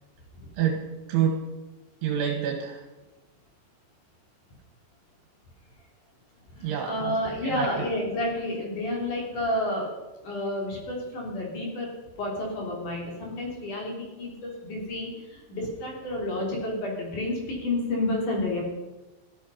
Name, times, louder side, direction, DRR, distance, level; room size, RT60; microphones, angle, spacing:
voice 1, 0.6-1.5 2.0-2.9 6.6-7.9, right 8 dB, 80° right, 3 dB, 3.6 m, -28 dB
voice 2, 6.5-9.9 10.2-11.9 12.2-18.6, left 1 dB, 45° left, -1 dB, 4.5 m, -30 dB
15.0 x 13.5 x 5.6 m, 1.1 s
omnidirectional pair, 5.5 m